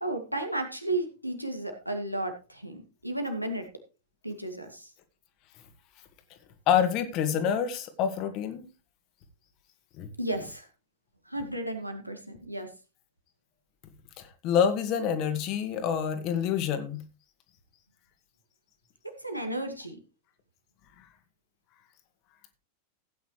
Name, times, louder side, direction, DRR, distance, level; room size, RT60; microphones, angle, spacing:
voice 1, 0.0-3.7 4.2-4.9 10.2-10.7 11.3-12.7 19.0-20.0, right 1 dB, 90° right, 2.2 m, -33 dB
voice 2, 6.7-8.7 10.0-10.1 14.2-17.0, left 8 dB, 40° left, 1.9 m, -27 dB
15.5 x 9.1 x 3.2 m
figure-of-eight pair, 90°, 0 cm